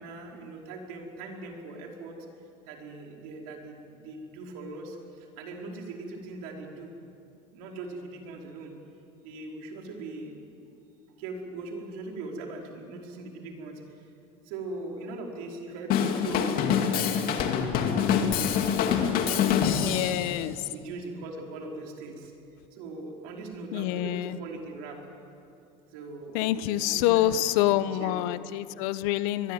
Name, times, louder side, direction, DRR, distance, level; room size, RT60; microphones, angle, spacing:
voice 1, 0.0-2.3 2.7-6.9 7.5-8.7 9.2-10.5 11.2-13.8 14.4-20.2 20.7-22.3 22.7-25.0 25.9-28.2, right 3 dB, 75° right, 1 dB, 5.0 m, -41 dB
Drum kit / Drum, 15.9-20.3, left 8 dB, 55° left, 2.6 m, -25 dB
voice 2, 19.8-20.7 23.7-24.4 26.3-29.5, left 14 dB, 75° left, 15 dB, 1.0 m, -26 dB
24.0 x 22.5 x 9.0 m, 2.6 s
cardioid pair, 140°, 18 cm